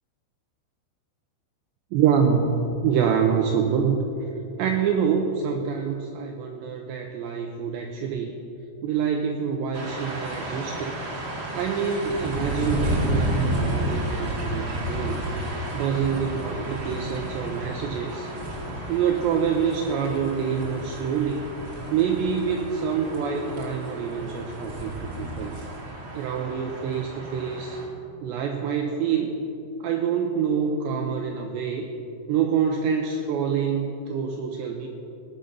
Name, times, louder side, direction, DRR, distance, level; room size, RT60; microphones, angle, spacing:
voice 1, 1.9-4.0 4.6-8.3 8.8-11.0 11.5-15.3 15.7-18.3 18.9-21.5 21.9-25.6 26.1-27.8 28.2-29.4 29.8-31.9 32.3-34.9, right 7 dB, 80° right, 3 dB, 2.6 m, -26 dB
sound 1, 9.7-27.8, right 1 dB, 45° right, 1.6 m, -32 dB
18.5 x 10.0 x 5.5 m, 2.7 s
omnidirectional pair, 5.9 m